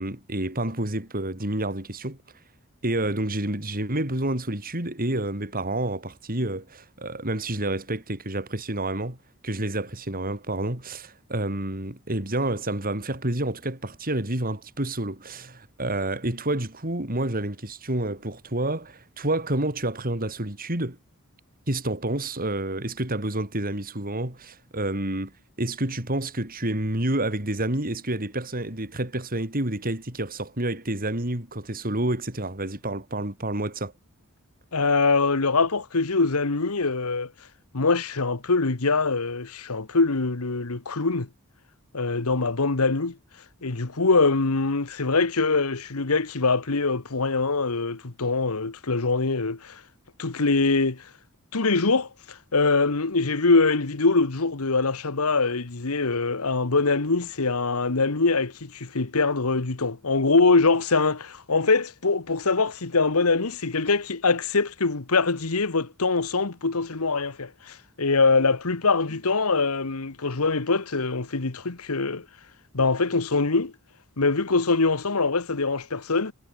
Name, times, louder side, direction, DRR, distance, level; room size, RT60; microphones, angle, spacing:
voice 1, 0.0-2.2 2.8-9.2 9.4-21.0 21.7-25.3 25.6-33.9, right 1 dB, 40° right, 4.6 m, -29 dB
voice 2, 34.7-37.3 37.7-41.3 41.9-43.2 43.6-49.8 50.2-51.0 51.5-72.2 72.7-73.7 74.2-76.3, left 3 dB, 75° left, 1.4 m, -23 dB
head